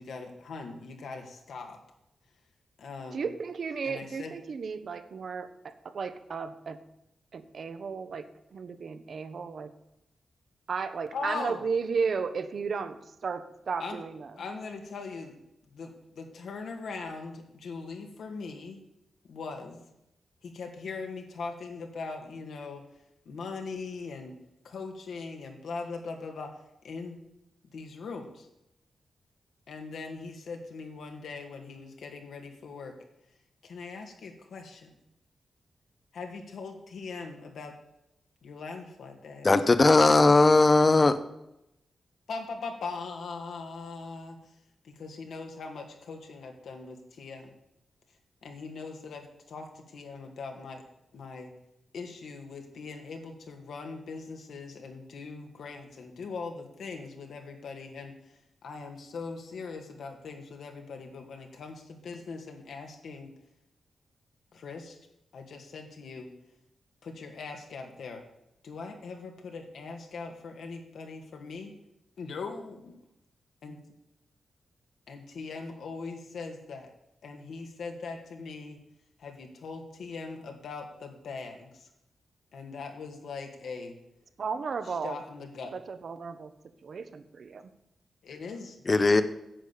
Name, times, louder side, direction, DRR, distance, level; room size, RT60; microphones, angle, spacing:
voice 1, 0.0-1.8 2.8-3.3 3.8-4.3 11.1-11.6 13.8-14.0 14.4-15.3 15.7-18.8 19.2-19.8 20.4-22.8 23.3-24.3 24.6-26.5 26.8-27.2 27.7-28.5 29.7-32.9 33.6-34.9 36.1-37.7 38.4-39.5 42.3-44.5 44.8-47.5 48.4-50.8 51.1-51.5 51.9-58.3 58.6-63.3 64.5-65.0 65.3-66.3 67.0-68.2 68.6-71.7 72.2-72.9 73.6-73.8 75.1-76.9 77.2-78.8 79.2-81.9 82.5-84.0 84.9-85.7 88.2-89.2, left 4 dB, 80° left, 2.0 m, -40 dB
voice 2, 3.1-6.8 7.3-9.7 10.7-14.3 84.4-85.2 85.7-86.5 86.8-87.7, right 5 dB, 60° right, 1.0 m, -34 dB
voice 3, 39.4-41.2 88.9-89.2, left 3 dB, 30° left, 0.8 m, -19 dB
10.0 x 7.1 x 8.3 m
wide cardioid pair, 105°, 0 cm